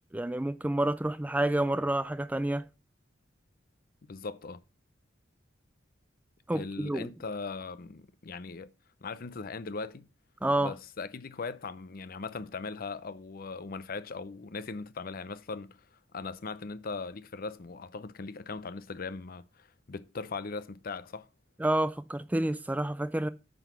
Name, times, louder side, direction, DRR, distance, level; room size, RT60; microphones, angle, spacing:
voice 1, 0.0-2.6 6.5-7.1 10.4-10.7 21.6-23.3, right 1 dB, 10° right, 0.3 m, -29 dB
voice 2, 4.1-4.6 6.5-8.7 9.0-10.1 10.6-15.9 16.1-21.3, left 4 dB, 50° left, 0.6 m, -39 dB
9.2 x 4.0 x 6.7 m
head